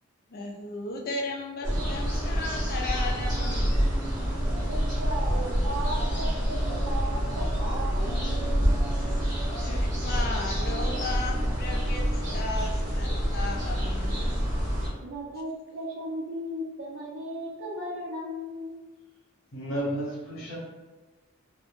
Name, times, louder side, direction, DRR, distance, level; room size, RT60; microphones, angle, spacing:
voice 1, 0.3-3.7 9.6-14.3, left 3 dB, 45° left, 1 dB, 0.3 m, -35 dB
sound 1, 1.6-14.9, equal, 20° right, 0.9 m, -27 dB
voice 2, 4.7-8.7 15.0-18.8, right 1 dB, 65° right, -4 dB, 0.5 m, -36 dB
voice 3, 19.5-20.5, right 1 dB, 75° left, -6 dB, 0.9 m, -32 dB
2.0 x 2.0 x 2.9 m, 1.2 s
head